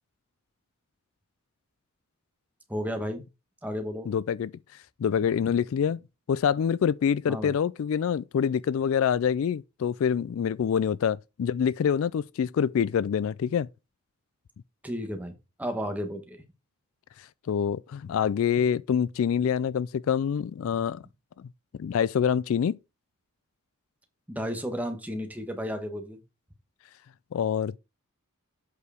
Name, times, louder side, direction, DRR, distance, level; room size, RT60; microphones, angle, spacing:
voice 1, 2.7-3.2 3.6-4.1 7.3-7.6 14.8-15.3 15.6-16.4 24.3-26.2, equal, 5° right, 1.3 m, -33 dB
voice 2, 4.1-4.5 5.0-6.0 6.3-13.7 17.2-21.0 21.4-21.5 21.8-22.8 27.3-27.8, left 7 dB, 65° left, 0.3 m, -26 dB
8.2 x 4.8 x 4.9 m
head